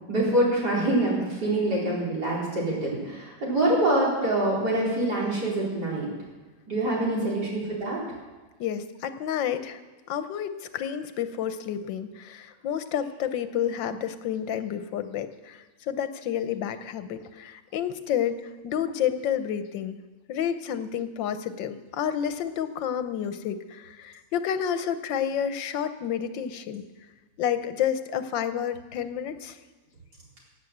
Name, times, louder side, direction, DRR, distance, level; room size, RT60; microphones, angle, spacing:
voice 1, 0.1-6.1 6.7-8.0, right 1 dB, 60° right, -5 dB, 4.9 m, -25 dB
voice 2, 7.0-7.4 8.6-9.8 10.1-15.6 15.9-20.0 20.3-26.8 27.4-29.6, left 9 dB, 85° left, 11 dB, 1.6 m, -30 dB
17.5 x 8.4 x 7.9 m, 1.3 s
omnidirectional pair, 2.0 m